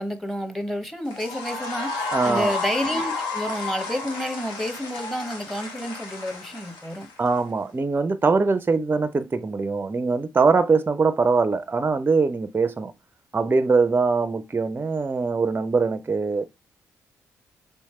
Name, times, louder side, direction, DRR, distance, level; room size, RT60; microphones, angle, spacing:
voice 1, 0.0-7.1, equal, 5° left, 0.9 m, -30 dB
sound 1, 1.0-7.4, left 3 dB, 70° left, 0.9 m, -32 dB
voice 2, 2.1-2.6 7.2-12.9 13.3-16.4, right 4 dB, 25° right, 0.4 m, -22 dB
3.3 x 3.1 x 4.2 m
hypercardioid pair, 40°, 8 cm